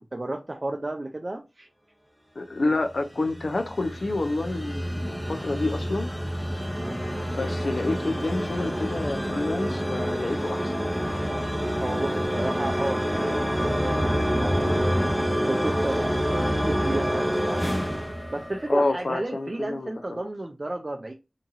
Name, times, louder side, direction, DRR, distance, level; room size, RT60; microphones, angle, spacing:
voice 1, 0.0-1.7 6.8-7.0 11.8-16.2 16.5-17.7 18.3-21.1, right 1 dB, 45° right, 0.4 m, -33 dB
voice 2, 2.4-6.1 7.3-10.8 18.7-20.2, left 2 dB, 75° left, 0.5 m, -28 dB
sound 1, 2.9-19.0, equal, 5° left, 0.7 m, -27 dB
2.9 x 2.4 x 2.6 m
wide cardioid pair, 55°, 0 cm